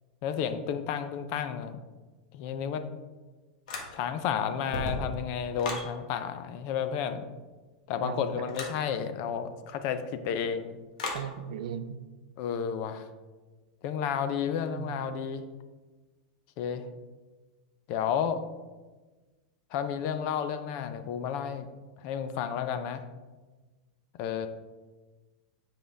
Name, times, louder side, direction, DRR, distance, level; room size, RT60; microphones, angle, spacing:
voice 1, 0.2-1.8 2.3-2.8 3.9-7.2 7.9-10.8 12.4-13.1 13.8-15.5 16.6-16.9 17.9-18.4 19.7-21.7 22.0-23.0 24.2-24.5, left 8 dB, 35° left, 10 dB, 0.4 m, -31 dB
sound 1, 3.7-4.2 4.6-5.9 8.5-8.8 11.0-11.3, left 2 dB, 80° left, 1.5 m, -35 dB
voice 2, 8.0-8.5 11.1-12.0 14.8-15.0, right 8 dB, 70° right, 10 dB, 0.5 m, -37 dB
7.5 x 5.3 x 3.4 m, 1.3 s
supercardioid pair, 175°, 4 cm